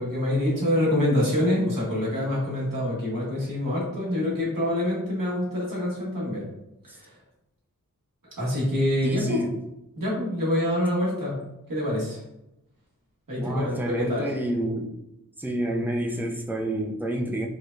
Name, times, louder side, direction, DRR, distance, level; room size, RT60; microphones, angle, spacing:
voice 1, 0.0-6.5 6.9-7.2 8.4-9.4 10.0-12.2 13.3-14.3, left 1 dB, 70° right, -5 dB, 1.5 m, -26 dB
voice 2, 9.0-9.6 13.3-14.9 15.4-17.5, right 1 dB, 5° right, -1 dB, 0.5 m, -29 dB
4.6 x 2.2 x 2.6 m, 0.88 s
wide cardioid pair, 65°, 34 cm